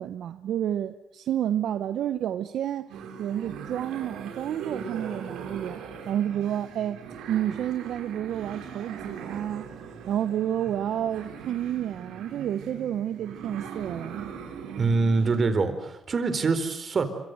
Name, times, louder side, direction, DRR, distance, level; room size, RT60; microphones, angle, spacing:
voice 1, 0.0-7.0 7.3-9.7 10.1-14.3, right 10 dB, 70° right, 1.0 m, -30 dB
sound 1, 2.9-15.5, right 6 dB, 90° right, 5.5 m, -40 dB
voice 2, 14.8-17.1, right 4 dB, 40° right, 4.3 m, -24 dB
26.0 x 25.0 x 8.0 m
cardioid pair, 90°, 0 cm